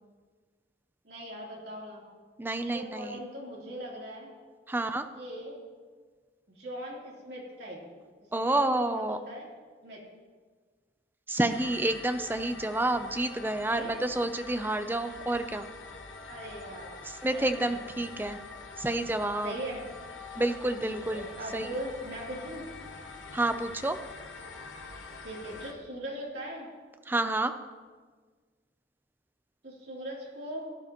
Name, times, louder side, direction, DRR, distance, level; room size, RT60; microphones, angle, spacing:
voice 1, 1.0-2.1 2.6-4.3 5.1-5.6 6.5-7.8 8.3-9.5 9.8-10.0 13.7-14.1 16.3-16.9 17.3-17.9 19.4-19.8 20.9-22.6 25.2-26.7 29.6-30.6, right 1 dB, 60° right, -4 dB, 3.3 m, -40 dB
voice 2, 2.4-3.2 4.7-5.1 8.3-9.2 11.3-15.7 17.0-18.4 18.8-19.5 20.4-21.2 21.5-21.7 23.3-24.0 27.1-27.5, right 2 dB, 10° right, 8 dB, 0.5 m, -29 dB
sound 1, 11.5-25.7, left 4 dB, 80° left, 1.2 m, -45 dB
16.5 x 11.0 x 3.0 m, 1.5 s
head